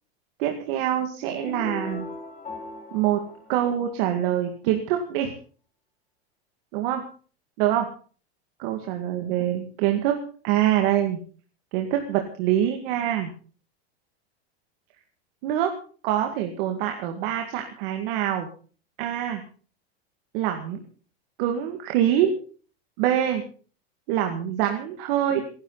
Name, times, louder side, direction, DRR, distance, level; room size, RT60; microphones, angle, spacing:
voice 1, 0.4-2.1 2.9-3.2 3.5-5.3 6.7-7.0 7.6-7.9 8.6-10.2 10.4-11.2 11.7-13.3 15.4-15.7 16.0-18.5 19.0-19.4 20.3-20.8 21.4-22.3 23.0-23.4 24.1-25.4, right 11 dB, 55° right, 4 dB, 2.2 m, -25 dB
sound 1, 1.4-4.4, left 3 dB, 20° left, 4.5 m, -38 dB
27.5 x 11.5 x 4.1 m, 0.41 s
supercardioid pair, 155°, 32 cm